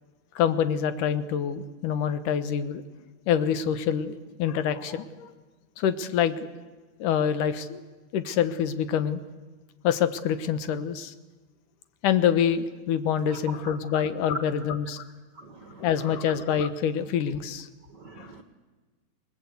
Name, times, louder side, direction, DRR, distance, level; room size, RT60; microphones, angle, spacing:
voice 1, 0.4-2.8 3.3-5.3 5.8-6.4 7.0-7.8 8.1-9.2 9.8-11.1 12.0-15.1 15.8-17.7 18.2-18.3, left 8 dB, 80° left, 12 dB, 2.7 m, -26 dB
voice 2, 15.3-15.9 16.2-16.3 17.9-18.4, right 3 dB, 60° right, 7 dB, 1.1 m, -46 dB
28.5 x 20.5 x 8.3 m, 1.3 s
omnidirectional pair, 3.7 m